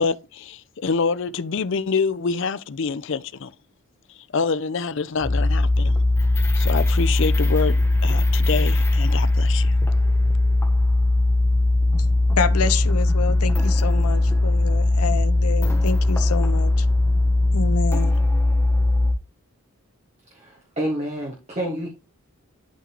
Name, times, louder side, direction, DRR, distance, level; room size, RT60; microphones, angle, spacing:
voice 1, 0.0-3.5 4.3-5.9 6.6-7.7 8.0-9.8, left 5 dB, 55° left, 0.5 m, -26 dB
sound 1, 5.2-19.1, left 2 dB, 10° left, 1.1 m, -19 dB
voice 2, 12.4-16.9 17.5-18.2, left 5 dB, 90° left, 0.7 m, -27 dB
voice 3, 20.3-21.9, equal, 30° right, 1.3 m, -28 dB
11.5 x 3.8 x 3.0 m
head